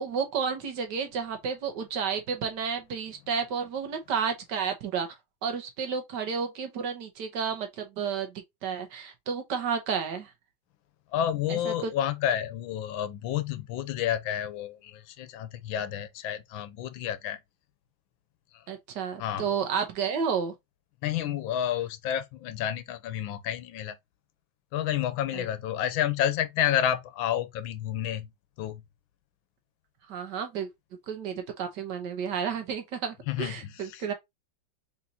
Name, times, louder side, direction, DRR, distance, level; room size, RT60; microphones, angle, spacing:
voice 1, 0.0-5.1 5.4-10.3 11.5-11.9 18.7-20.5 25.3-25.4 30.1-30.7 31.1-34.1, right 6 dB, 65° right, 1.5 m, -31 dB
voice 2, 11.1-17.4 19.2-19.5 21.0-24.0 24.7-28.3 28.6-28.8 33.3-34.0, left 10 dB, 85° left, 1.4 m, -30 dB
4.1 x 4.1 x 2.8 m
omnidirectional pair, 2.1 m